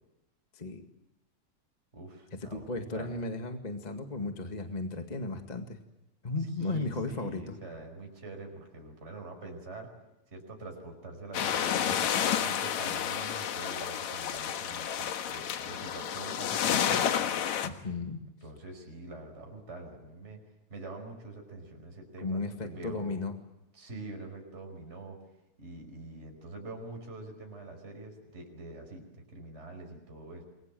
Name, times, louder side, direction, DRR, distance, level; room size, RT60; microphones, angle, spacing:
voice 1, 0.5-0.8 2.5-5.8 6.2-7.5 17.6-18.2 22.2-23.3, left 3 dB, 20° left, 5 dB, 1.5 m, -35 dB
voice 2, 1.9-3.2 6.6-9.9 10.3-17.3 18.4-20.4 20.7-23.2 23.7-25.2 25.6-30.4, right 2 dB, 20° right, 2 dB, 5.4 m, -45 dB
sound 1, 11.3-17.7, left 9 dB, 75° left, 2.7 m, -30 dB
28.5 x 22.5 x 7.7 m, 0.95 s
omnidirectional pair, 3.3 m